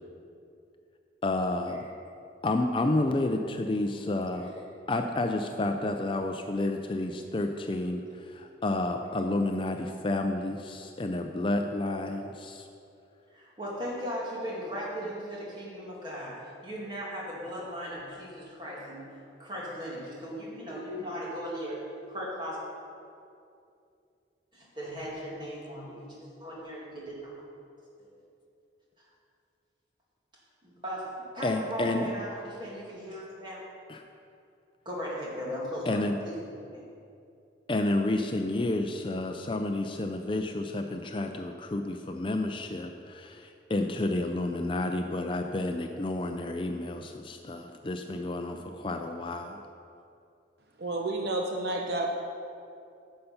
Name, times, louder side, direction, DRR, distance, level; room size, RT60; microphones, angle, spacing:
voice 1, 1.2-1.9 2.4-4.5 4.9-12.7 31.4-32.1 33.9-34.0 35.9-36.2 37.7-49.6, left 2 dB, 25° left, 5 dB, 0.4 m, -30 dB
voice 2, 13.3-19.1 19.4-21.8 22.1-22.6 24.5-26.1 26.4-27.3 28.0-28.1 30.6-33.6 34.9-36.4 36.7-36.8, equal, 25° right, -5 dB, 2.2 m, -37 dB
voice 3, 50.8-52.1, right 2 dB, 55° right, 1 dB, 0.7 m, -30 dB
10.0 x 6.7 x 5.5 m, 2.5 s
head